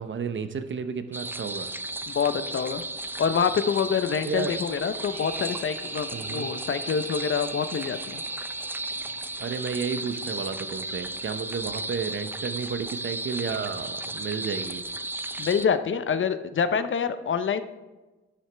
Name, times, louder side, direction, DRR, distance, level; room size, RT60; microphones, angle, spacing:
voice 1, 0.0-1.7 4.2-4.5 6.1-6.5 9.4-14.8, right 6 dB, 40° right, 10 dB, 0.8 m, -32 dB
sound 1, 1.1-15.7, right 2 dB, 5° right, 0.4 m, -34 dB
voice 2, 2.1-2.8 3.2-8.2 15.4-17.6, left 6 dB, 40° left, 11 dB, 0.7 m, -26 dB
sound 2, 4.8-10.0, right 6 dB, 65° right, 1.3 m, -46 dB
11.0 x 9.1 x 3.4 m, 1.1 s
cardioid pair, 90°, 30 cm